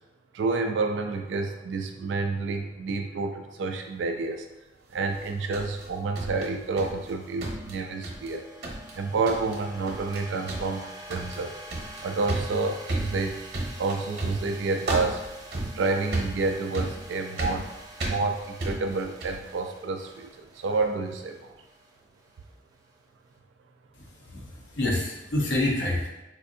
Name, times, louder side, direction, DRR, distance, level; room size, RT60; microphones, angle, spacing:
voice 1, 0.3-4.4 4.9-8.4 9.0-10.8 11.1-11.5 12.0-13.4 13.8-15.2 15.7-17.7 18.1-20.3 20.6-21.4, right 3 dB, 90° right, 4 dB, 0.3 m, -29 dB
sound 1, 5.0-23.3, right 1 dB, 20° right, 0.4 m, -47 dB
sound 2, 5.1-7.1 7.4-8.3 8.6-9.0 9.3-9.6 9.9-10.2 10.5-19.5, right 2 dB, 55° right, 0.9 m, -33 dB
voice 2, 23.9-26.1, left 1 dB, 90° left, -2 dB, 0.8 m, -28 dB
4.3 x 2.5 x 2.6 m, 1.0 s
head